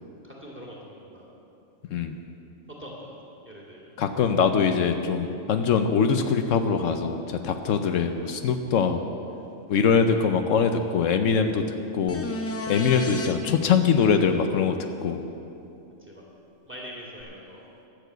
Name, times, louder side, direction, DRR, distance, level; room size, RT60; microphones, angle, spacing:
voice 1, 0.2-1.3 2.8-3.1 3.4-3.9 16.1-16.2 16.7-17.6, equal, 10° right, -4 dB, 2.3 m, -42 dB
voice 2, 1.9-2.2 4.0-9.0 9.7-12.3 12.7-14.8 15.0-15.3, left 6 dB, 80° left, 7 dB, 1.0 m, -23 dB
sound 1, 12.1-13.3 17.2-17.3, left 1 dB, 15° left, 0.5 m, -32 dB
12.0 x 7.1 x 8.0 m, 2.8 s
omnidirectional pair, 1.3 m